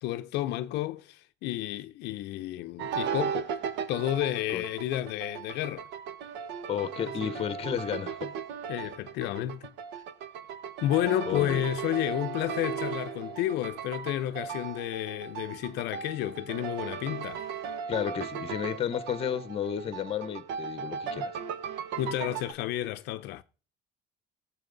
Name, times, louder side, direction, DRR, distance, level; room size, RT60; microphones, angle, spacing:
voice 1, 0.0-3.5 3.9-5.9 7.0-7.3 8.7-9.7 10.8-17.4 22.0-23.4, left 14 dB, 65° left, 0.5 m, -31 dB
sound 1, 2.8-22.5, right 7 dB, 75° right, 1.2 m, -37 dB
voice 2, 6.7-8.3 11.3-11.6 17.9-21.3, left 9 dB, 30° left, 0.9 m, -32 dB
19.5 x 7.5 x 3.9 m
cardioid pair, 160°, 18 cm